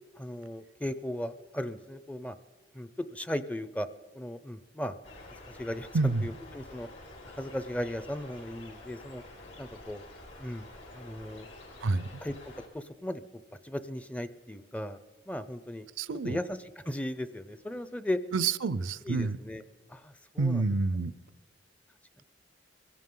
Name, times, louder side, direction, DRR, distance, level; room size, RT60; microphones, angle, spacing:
voice 1, 0.2-2.4 2.7-3.9 4.1-5.0 5.5-6.9 7.2-9.2 9.6-10.1 10.4-10.7 10.9-11.5 12.2-12.3 12.7-13.2 13.6-15.0 15.3-15.9 16.2-18.2 19.1-19.6 19.9-20.7, left 1 dB, 5° left, 12 dB, 0.4 m, -36 dB
sound 1, 5.0-12.7, left 2 dB, 75° left, 3.2 m, -49 dB
voice 2, 5.9-6.3 11.8-12.1 16.0-16.4 18.3-19.4 20.4-21.1, right 3 dB, 85° right, 16 dB, 0.5 m, -28 dB
22.5 x 16.5 x 3.8 m, 1.3 s
head